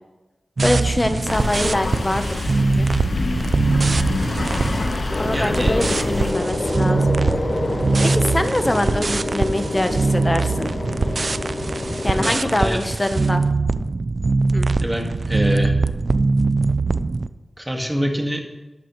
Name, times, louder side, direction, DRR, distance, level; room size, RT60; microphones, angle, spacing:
voice 1, 0.6-2.9 5.2-7.1 8.0-10.7 12.0-13.4 14.5-14.8, left 1 dB, 20° left, 8 dB, 0.9 m, -24 dB
sound 1, 0.6-17.3, right 3 dB, 50° right, 0.4 m, -22 dB
sound 2, 1.3-6.3, left 2 dB, 60° left, 1.1 m, -26 dB
sound 3, 5.1-12.3, left 1 dB, 45° left, 1.4 m, -27 dB
voice 2, 5.3-6.1 12.1-12.8 14.8-15.7 17.6-18.4, equal, 10° right, 2 dB, 1.8 m, -26 dB
13.0 x 11.0 x 3.1 m, 1.1 s
wide cardioid pair, 85°, 0 cm